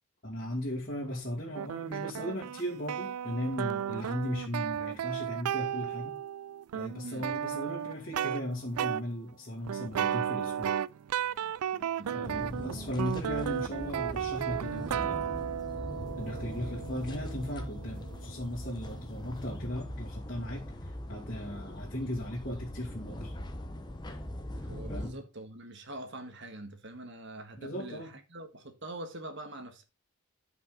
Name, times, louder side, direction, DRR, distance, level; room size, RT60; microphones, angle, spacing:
voice 1, 0.2-6.2 6.7-10.7 12.1-15.4 16.2-23.4 24.9-25.2 27.6-28.1, left 1 dB, 40° left, 2.1 m, -37 dB
sound 1, 1.5-8.4 8.8-9.0 9.7-18.7, right 9 dB, 85° right, 0.4 m, -34 dB
voice 2, 11.4-12.7 24.6-29.8, right 1 dB, 55° right, 1.5 m, -44 dB
sound 2, 12.2-25.1, left 1 dB, 20° left, 0.9 m, -41 dB
11.0 x 5.3 x 3.9 m
head